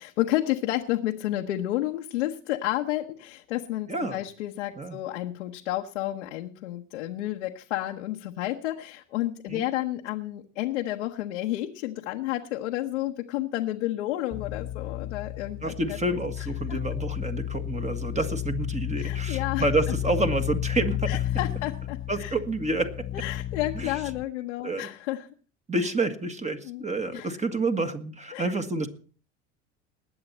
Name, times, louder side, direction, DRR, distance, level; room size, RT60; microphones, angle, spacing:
voice 1, 0.0-16.0 16.7-16.8 19.0-19.6 21.1-22.3 23.1-25.3 26.6-26.9 27.1-27.3 28.3-28.5, left 15 dB, 85° left, 2 dB, 1.0 m, -31 dB
voice 2, 3.9-4.2 4.8-5.0 9.5-9.7 15.6-21.2 22.1-23.1 23.7-23.9 24.6-24.9 25.7-28.9, right 2 dB, 20° right, 7 dB, 1.7 m, -29 dB
sound 1, 14.3-24.2, left 12 dB, 30° left, 0.5 m, -32 dB
20.0 x 8.0 x 4.2 m, 0.40 s
hypercardioid pair, 75°, 34 cm